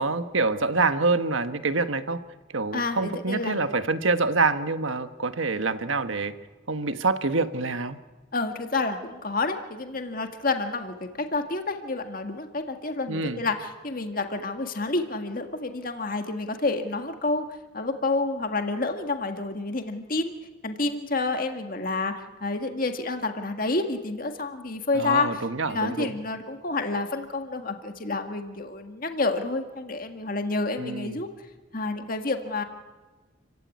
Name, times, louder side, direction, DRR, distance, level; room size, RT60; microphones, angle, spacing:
voice 1, 0.0-2.2 2.5-6.3 6.7-8.0 13.1-13.4 24.9-26.2 30.8-31.2, right 3 dB, 85° right, 10 dB, 1.4 m, -26 dB
voice 2, 2.7-3.6 8.3-17.5 17.7-20.3 20.6-25.4 25.7-31.3 31.7-32.6, left 3 dB, 45° left, 6 dB, 1.8 m, -29 dB
28.5 x 16.0 x 9.6 m, 1.2 s
head